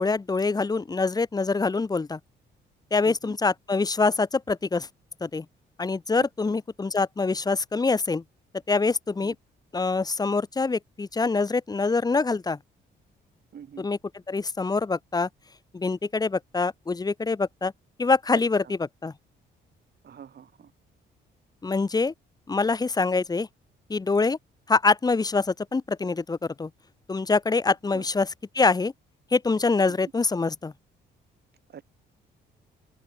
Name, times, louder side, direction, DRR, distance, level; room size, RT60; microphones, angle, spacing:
voice 1, 0.0-2.2 2.9-4.9 5.2-5.4 5.8-8.2 8.7-9.3 9.7-12.6 13.8-14.0 14.3-15.3 15.7-17.7 18.0-19.1 21.6-22.1 22.5-23.5 23.9-24.4 24.7-26.7 27.1-28.3 28.5-28.9 29.3-30.7, left 4 dB, 20° left, 0.8 m, -25 dB
voice 2, 3.0-3.4 6.2-6.6 9.2-9.3 13.5-13.8 18.3-18.7 20.0-20.7 27.9-28.0 31.7-31.8, right 8 dB, 55° right, 4.8 m, -45 dB
open air
cardioid pair, 90°, 20 cm